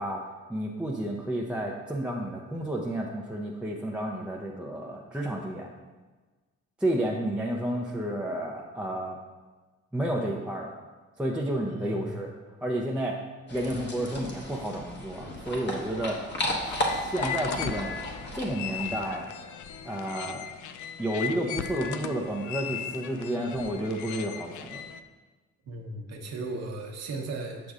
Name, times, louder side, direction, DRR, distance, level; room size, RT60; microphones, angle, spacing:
voice 1, 0.0-5.7 6.8-9.2 9.9-10.7 11.2-12.3 12.6-13.2 13.5-16.2 16.6-18.0 18.3-19.3 19.8-20.5 21.0-24.8, right 1 dB, 5° right, -3 dB, 0.6 m, -31 dB
voice 2, 11.8-12.2 25.7-27.7, right 2 dB, 60° right, 1 dB, 1.0 m, -36 dB
sound 1, 13.5-19.1, left 1 dB, 35° left, 1.2 m, -34 dB
sound 2, 16.6-25.0, left 8 dB, 75° left, 0.4 m, -38 dB
8.0 x 6.0 x 2.5 m, 1.3 s
cardioid pair, 90°, 30 cm